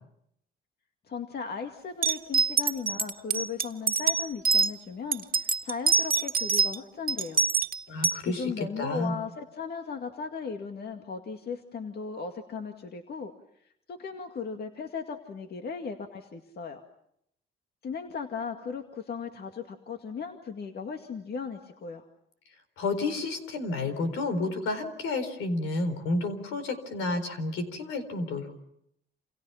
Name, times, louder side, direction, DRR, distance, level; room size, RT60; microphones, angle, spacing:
voice 1, 1.0-7.4 8.3-13.3 13.9-16.8 17.8-22.0, left 5 dB, 55° left, 4 dB, 2.2 m, -37 dB
sound 1, 2.0-4.7 5.1-6.8 7.1-8.2, right 5 dB, 45° right, 1.8 m, -25 dB
voice 2, 7.9-9.2 22.8-28.6, left 2 dB, 90° left, 9 dB, 4.2 m, -31 dB
29.0 x 28.0 x 5.8 m, 0.73 s
cardioid pair, 90°, 20 cm